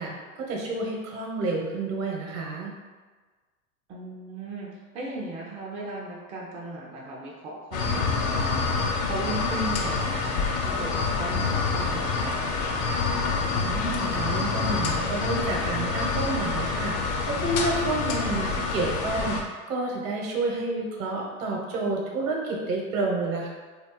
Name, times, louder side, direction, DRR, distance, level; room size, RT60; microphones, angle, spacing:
voice 1, 0.0-2.7 13.6-23.5, right 2 dB, 65° right, -1 dB, 0.9 m, -30 dB
voice 2, 3.9-12.5, right 2 dB, 15° right, -3 dB, 0.3 m, -37 dB
sound 1, 7.7-19.4, left 4 dB, 40° left, 0.5 m, -27 dB
2.6 x 2.0 x 3.6 m, 1.4 s
hypercardioid pair, 95°, 42 cm